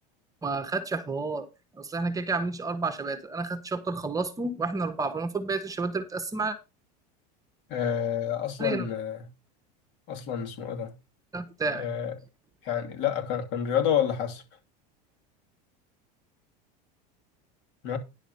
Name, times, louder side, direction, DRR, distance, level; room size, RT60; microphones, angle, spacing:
voice 1, 0.4-6.6 8.6-8.8 11.3-11.9, right 3 dB, 15° right, 1.2 m, -30 dB
voice 2, 7.7-9.3 10.1-10.9 11.7-12.1 12.6-14.4 17.8-18.0, left 9 dB, 60° left, 2.8 m, -29 dB
10.5 x 4.9 x 6.9 m
supercardioid pair, 130°, 21 cm